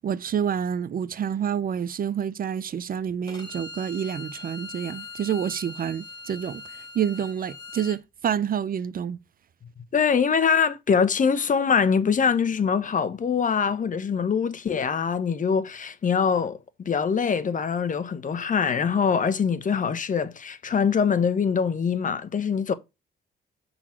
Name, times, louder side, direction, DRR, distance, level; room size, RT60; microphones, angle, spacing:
voice 1, 0.0-6.6 6.9-9.2, right 8 dB, 45° right, 0.5 m, -28 dB
Bowed string instrument, 3.3-8.0, left 3 dB, 20° left, 2.7 m, -41 dB
voice 2, 9.9-22.7, left 6 dB, 40° left, 1.0 m, -23 dB
7.3 x 4.0 x 4.4 m
cardioid pair, 90°, 20 cm